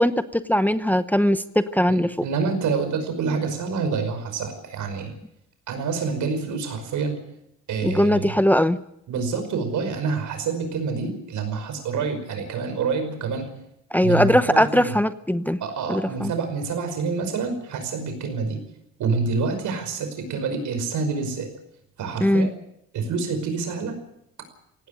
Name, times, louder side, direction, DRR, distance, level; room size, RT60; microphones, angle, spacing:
voice 1, 0.0-2.1 7.8-8.8 13.9-15.6 15.9-16.3 22.2-22.5, equal, 5° left, 11 dB, 0.8 m, -20 dB
voice 2, 1.9-5.1 5.7-7.2 7.7-8.3 9.1-13.5 14.0-15.0 15.6-18.6 19.0-21.5 22.0-22.5 22.9-24.0, right 4 dB, 75° right, 8 dB, 5.4 m, -27 dB
18.0 x 16.5 x 9.2 m, 0.77 s
cardioid pair, 90°, 30 cm